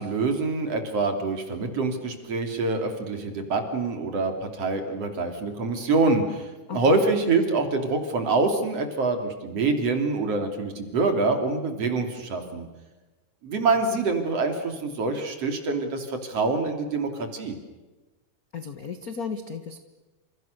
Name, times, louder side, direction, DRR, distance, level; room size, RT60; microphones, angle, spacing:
voice 1, 0.0-12.7 13.4-17.6, right 3 dB, 50° right, 5 dB, 3.7 m, -25 dB
voice 2, 6.7-7.0 18.5-19.8, left 6 dB, 60° left, 8 dB, 0.9 m, -34 dB
29.0 x 28.0 x 6.6 m, 1.2 s
omnidirectional pair, 3.8 m